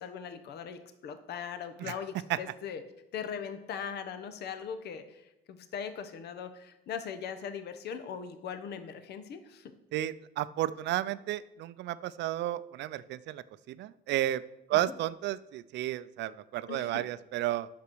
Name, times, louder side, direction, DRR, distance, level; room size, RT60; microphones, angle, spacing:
voice 1, 0.0-2.8 3.1-9.7 14.7-14.9 16.7-17.0, left 7 dB, 60° left, 10 dB, 0.9 m, -40 dB
voice 2, 9.9-14.4 14.7-17.7, right 14 dB, 70° right, 16 dB, 0.5 m, -32 dB
8.4 x 6.1 x 6.1 m, 0.92 s
cardioid pair, 125°, 19 cm